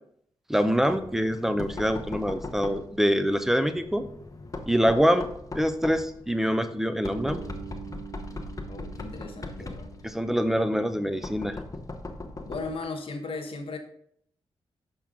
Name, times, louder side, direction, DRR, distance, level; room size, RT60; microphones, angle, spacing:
voice 1, 0.5-4.0 4.7-5.3 5.5-7.4 10.0-11.6, equal, 5° right, 10 dB, 0.7 m, -25 dB
Knock, 0.6-12.8, left 2 dB, 35° left, 0.9 m, -40 dB
Bass guitar, 7.1-11.2, right 7 dB, 65° right, 2.4 m, -45 dB
voice 2, 8.7-9.9 12.4-13.8, left 3 dB, 60° left, 4 dB, 1.1 m, -36 dB
6.0 x 5.6 x 3.7 m, 0.67 s
cardioid pair, 65°, 10 cm